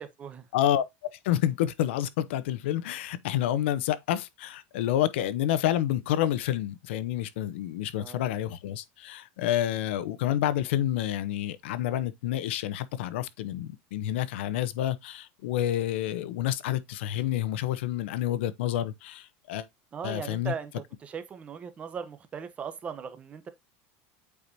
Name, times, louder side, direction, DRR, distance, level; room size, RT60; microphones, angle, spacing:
voice 1, 0.0-0.4 8.0-8.4 19.9-20.7 21.0-23.5, right 7 dB, 20° right, 0.9 m, -38 dB
voice 2, 0.5-19.7 20.0-20.5, left 12 dB, 90° left, 0.8 m, -29 dB
8.4 x 4.7 x 2.7 m
supercardioid pair, 160°, 6 cm